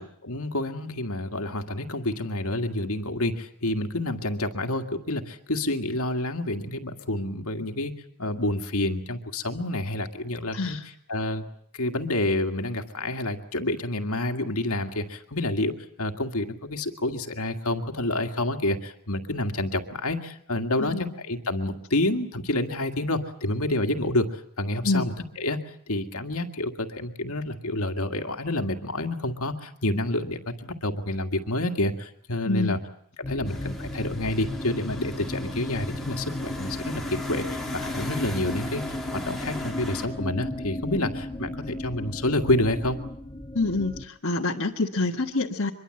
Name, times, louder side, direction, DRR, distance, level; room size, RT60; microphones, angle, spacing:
voice 1, 0.0-7.9 8.2-10.8 11.1-11.5 11.8-24.3 24.6-25.6 25.9-32.8 33.3-38.8 39.3-43.0, left 1 dB, 75° left, 5 dB, 2.0 m, -28 dB
voice 2, 10.5-10.8 20.8-21.1 24.8-25.1 32.4-32.8 43.5-45.7, left 2 dB, 60° left, -1 dB, 1.6 m, -26 dB
sound 1, 33.2-44.0, left 1 dB, 25° left, 1.0 m, -34 dB
sound 2, 33.4-40.1, left 1 dB, ahead, 3.7 m, -40 dB
24.0 x 22.5 x 7.8 m, 0.64 s
head